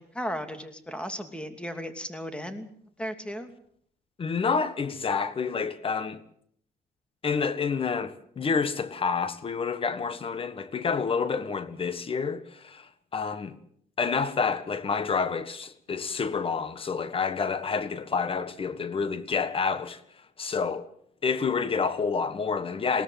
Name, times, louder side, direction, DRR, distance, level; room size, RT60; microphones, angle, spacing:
voice 1, 0.0-2.7 3.0-3.5, equal, 5° left, 2.7 m, -35 dB
voice 2, 4.2-6.2 7.2-13.6 14.0-20.0 20.4-20.9 21.2-23.0, left 5 dB, 35° left, 1.5 m, -28 dB
21.0 x 18.5 x 7.6 m
cardioid pair, 110°, 17 cm